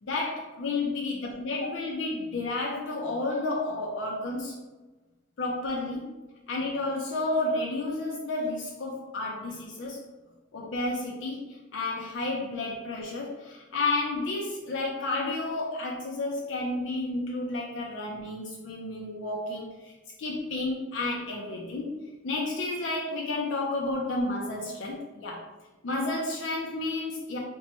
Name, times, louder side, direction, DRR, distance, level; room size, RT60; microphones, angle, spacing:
voice 1, 0.0-1.1 1.5-4.6 5.4-6.1 6.5-10.0 10.5-19.9 20.2-21.9 22.2-25.4 25.8-27.4, left 2 dB, 65° left, -2 dB, 0.4 m, -31 dB
3.0 x 2.2 x 4.0 m, 1.2 s
head